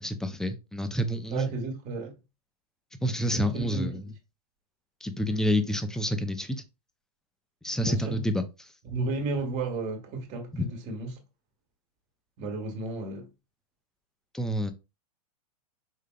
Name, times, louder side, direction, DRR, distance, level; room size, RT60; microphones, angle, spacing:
voice 1, 0.0-1.5 3.0-4.0 5.0-6.6 7.6-8.7 10.5-10.6 14.3-14.7, equal, 5° left, 0.5 m, -28 dB
voice 2, 1.3-2.1 3.3-3.9 7.8-8.2 8.8-11.2 12.4-13.3, right 3 dB, 35° right, 1.3 m, -33 dB
5.2 x 3.6 x 2.3 m
hypercardioid pair, 115°, 20 cm